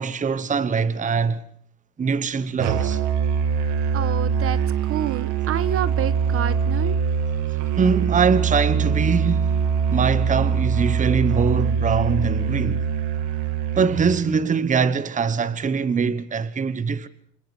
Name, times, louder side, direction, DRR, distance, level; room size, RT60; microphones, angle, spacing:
voice 1, 0.0-1.4 2.0-3.0 7.8-9.6 9.9-12.8 13.8-17.1, right 5 dB, 25° right, 1.1 m, -22 dB
Musical instrument, 2.6-14.3, right 6 dB, 70° right, 2.2 m, -23 dB
voice 2, 3.9-7.0, right 10 dB, 50° right, 1.3 m, -28 dB
27.5 x 26.0 x 4.7 m
supercardioid pair, 95°, 29 cm